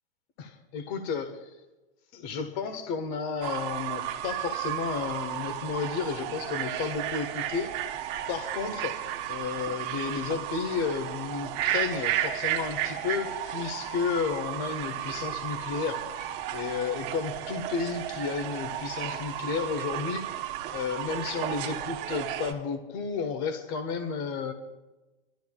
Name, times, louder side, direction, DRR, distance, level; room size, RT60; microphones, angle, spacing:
voice 1, 0.4-1.5 2.1-7.7 8.3-9.0 9.3-16.0 16.5-24.5, left 5 dB, 45° left, 7 dB, 1.6 m, -32 dB
Fowl / Bird, 3.4-22.5, right 11 dB, 40° right, 1.5 m, -33 dB
23.5 x 13.0 x 2.5 m, 1.1 s
hypercardioid pair, 125°, 29 cm